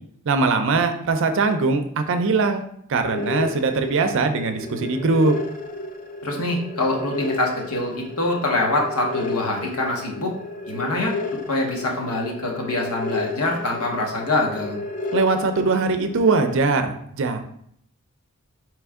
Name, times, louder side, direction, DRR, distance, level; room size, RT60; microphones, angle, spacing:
voice 1, 0.3-2.6 2.9-5.3 15.1-17.4, right 3 dB, 60° right, 7 dB, 0.5 m, -21 dB
sound 1, 3.0-16.6, left 2 dB, 35° left, 0.4 m, -32 dB
voice 2, 6.2-10.3 10.7-11.2 11.5-14.8, left 2 dB, 80° left, 0 dB, 1.0 m, -24 dB
4.2 x 3.1 x 3.5 m, 0.69 s
head